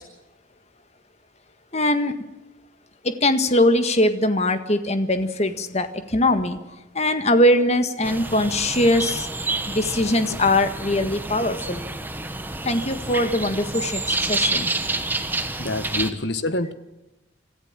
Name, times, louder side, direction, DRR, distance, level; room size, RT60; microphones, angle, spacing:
voice 1, 1.7-2.1 3.0-6.6 6.9-9.3 9.7-11.8 12.6-14.7, left 1 dB, 35° left, 9 dB, 1.7 m, -21 dB
sound 1, 8.0-16.1, right 2 dB, 10° right, 1.3 m, -28 dB
voice 2, 15.6-16.7, left 2 dB, 60° left, 12 dB, 1.5 m, -26 dB
25.5 x 15.0 x 7.5 m, 1.0 s
head